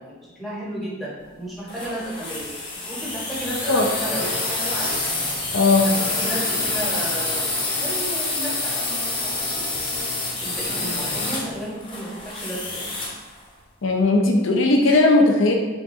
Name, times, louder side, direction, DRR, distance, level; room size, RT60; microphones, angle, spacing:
voice 1, 0.0-5.0 5.8-9.7 10.4-12.9, right 1 dB, ahead, -7 dB, 1.3 m, -33 dB
sound 1, 1.7-13.3, left 2 dB, 25° left, 0.9 m, -27 dB
voice 2, 5.5-5.9 13.8-15.5, left 2 dB, 65° left, 1 dB, 0.7 m, -17 dB
4.8 x 3.7 x 2.8 m, 1.3 s
head